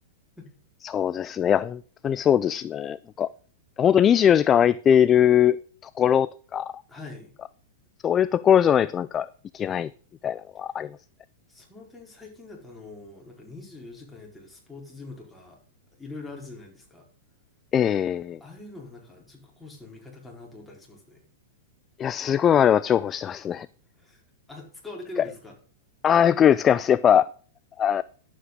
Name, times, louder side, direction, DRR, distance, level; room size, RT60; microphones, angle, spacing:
voice 1, 0.8-3.3 3.8-5.6 6.0-6.7 8.0-9.3 9.5-9.9 10.2-10.9 17.7-18.4 22.0-23.7 26.0-27.3 27.8-28.0, left 9 dB, 25° left, 0.3 m, -21 dB
voice 2, 6.9-7.4 10.8-10.9 11.5-15.6 16.0-17.1 18.4-21.3 24.0-24.2 24.5-25.6, left 3 dB, 5° left, 4.5 m, -43 dB
11.5 x 8.4 x 3.9 m
hypercardioid pair, 120°, 0 cm